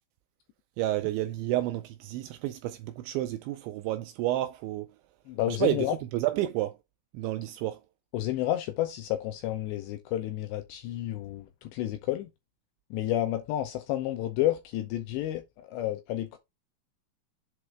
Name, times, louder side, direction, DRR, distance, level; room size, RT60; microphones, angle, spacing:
voice 1, 0.8-5.0 5.5-6.8 7.1-7.8, right 15 dB, 85° right, 2.7 m, -30 dB
voice 2, 5.3-5.9 8.1-12.3 12.9-16.4, left 13 dB, 80° left, 2.6 m, -30 dB
8.0 x 3.3 x 4.6 m
omnidirectional pair, 5.7 m